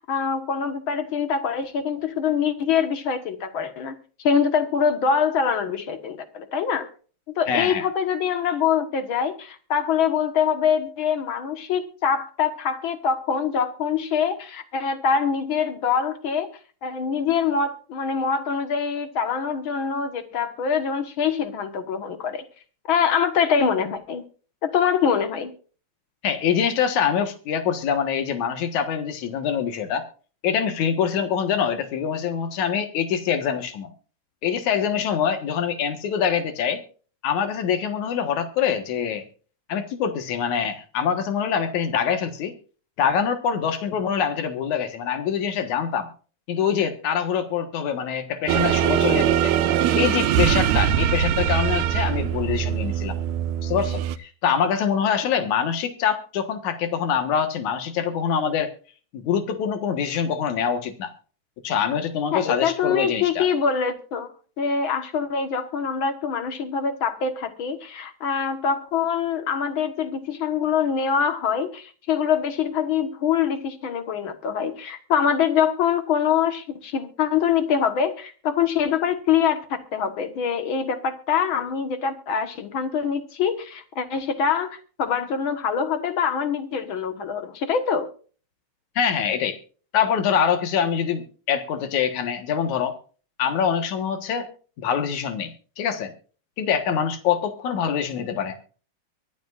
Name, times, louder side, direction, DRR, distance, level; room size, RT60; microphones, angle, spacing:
voice 1, 0.0-4.0 4.2-6.9 7.4-16.5 16.8-22.4 22.9-24.2 24.6-25.5 62.3-64.3 64.6-88.1, left 7 dB, 50° left, 8 dB, 1.9 m, -24 dB
voice 2, 7.5-7.8 26.2-30.0 30.4-33.9 34.4-36.8 37.2-39.2 39.7-42.5 43.0-46.1 46.5-49.5 49.9-53.2 53.6-58.7 59.1-61.1 61.6-63.5 89.0-89.6 89.9-93.0 93.4-94.5 94.8-96.1 96.6-98.7, left 7 dB, 80° left, 8 dB, 2.9 m, -24 dB
sound 1, 48.5-54.2, right 10 dB, 80° right, 2.0 m, -22 dB
24.0 x 10.5 x 2.5 m, 0.39 s
omnidirectional pair, 3.3 m